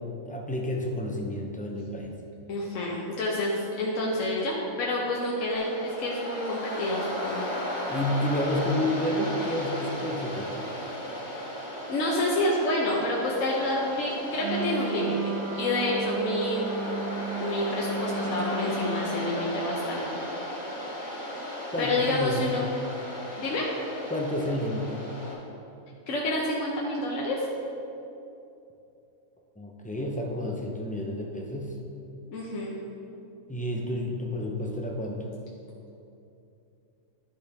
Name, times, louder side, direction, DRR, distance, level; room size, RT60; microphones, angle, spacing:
voice 1, 0.0-2.1 7.9-10.5 21.7-22.4 24.1-24.9 29.6-31.8 33.5-35.3, left 1 dB, 10° left, -1 dB, 0.3 m, -30 dB
voice 2, 2.5-7.4 11.2-11.3 11.9-16.6 17.4-20.1 21.8-22.7 23.4-23.7 26.1-27.4 32.3-32.8, left 1 dB, 70° left, -4 dB, 1.2 m, -28 dB
Waves surf, 5.5-25.3, equal, 35° left, 1.5 m, -35 dB
Wind instrument woodwind instrument, 14.4-19.1, right 4 dB, 85° right, 1.0 m, -34 dB
11.5 x 5.0 x 3.5 m, 2.8 s
omnidirectional pair, 1.4 m